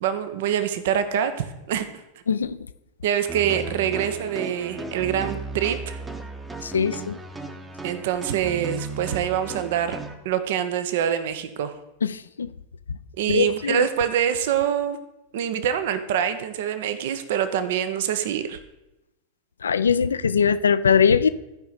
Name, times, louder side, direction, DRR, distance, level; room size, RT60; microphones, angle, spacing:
voice 1, 0.0-1.9 3.0-6.0 7.8-10.0 10.2-11.7 13.2-15.0 15.3-18.6, right 9 dB, 55° right, 0.6 m, -25 dB
voice 2, 2.3-2.6 6.6-7.2 12.0-12.5 13.3-13.8 19.6-21.3, left 6 dB, 70° left, 0.3 m, -21 dB
sound 1, 3.3-10.1, right 3 dB, 10° right, 0.8 m, -35 dB
14.0 x 5.0 x 4.0 m
figure-of-eight pair, 90°, 0 cm